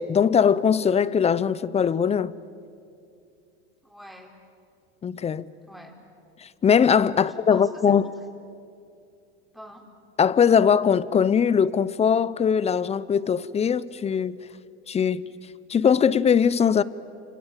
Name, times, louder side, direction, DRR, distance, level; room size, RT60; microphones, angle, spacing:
voice 1, 0.0-2.3 5.0-5.5 6.4-8.1 10.2-14.4 14.9-15.3 15.7-16.8, left 7 dB, 20° left, 0.7 m, -21 dB
voice 2, 3.8-4.3 5.7-6.1 7.2-8.1 9.5-9.9, equal, ahead, 4.1 m, -44 dB
29.0 x 26.5 x 7.5 m
supercardioid pair, 115°, 32 cm